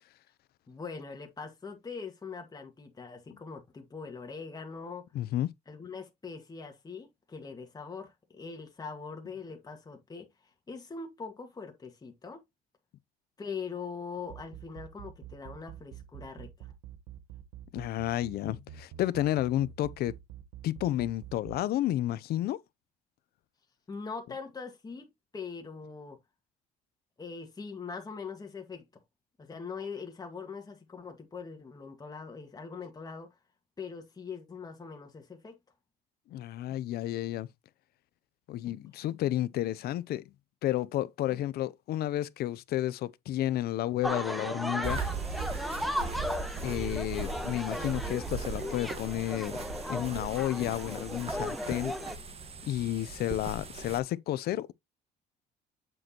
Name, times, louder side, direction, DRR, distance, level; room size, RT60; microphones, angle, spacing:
voice 1, 0.7-5.1 5.7-12.4 13.4-16.7 23.9-26.2 27.2-28.9 29.4-33.3 33.8-35.6, left 5 dB, 20° left, 1.8 m, -42 dB
voice 2, 5.1-5.5 17.7-20.1 20.6-22.6 36.3-37.5 38.5-40.3 40.6-45.0 46.6-49.6 49.9-51.9 52.6-54.7, left 13 dB, 65° left, 0.6 m, -31 dB
sound 1, 14.2-21.6, right 11 dB, 90° right, 1.2 m, -46 dB
sound 2, 44.0-52.2, equal, ahead, 1.1 m, -36 dB
sound 3, 44.8-54.0, right 4 dB, 35° right, 1.5 m, -39 dB
7.7 x 6.1 x 3.0 m
cardioid pair, 110°, 17 cm